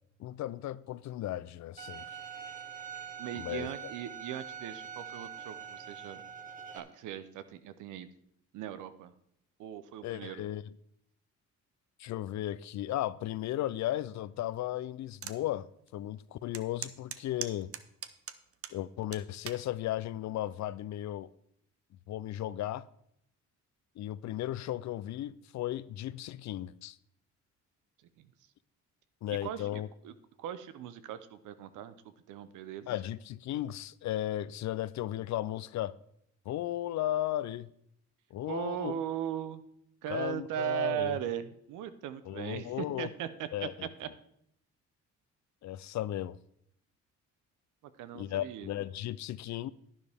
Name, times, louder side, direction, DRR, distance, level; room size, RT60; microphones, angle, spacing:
voice 1, 0.2-2.2 3.4-3.7 10.0-10.6 12.0-15.7 15.9-17.7 18.7-21.3 22.1-22.9 24.0-27.0 29.2-29.9 32.9-35.9 36.5-37.7 38.3-39.0 40.1-41.2 42.3-43.1 43.5-43.9 45.6-46.4 48.1-49.7, left 13 dB, 65° left, 0.5 m, -35 dB
Bowed string instrument, 1.8-6.8, right 7 dB, 25° right, 1.7 m, -44 dB
voice 2, 3.2-6.2 6.7-8.1 8.5-9.1 9.6-10.4 28.2-28.3 29.3-29.7 30.0-30.1 30.4-31.9 32.3-32.9 38.5-39.6 40.0-44.1 48.0-48.7, right 10 dB, 90° right, 0.8 m, -38 dB
sound 1, 15.2-15.4 15.9-16.0 16.5-18.8 19.1-19.6 20.4-20.7, right 8 dB, 50° right, 0.8 m, -40 dB
11.0 x 10.0 x 3.5 m
cardioid pair, 90°, 30 cm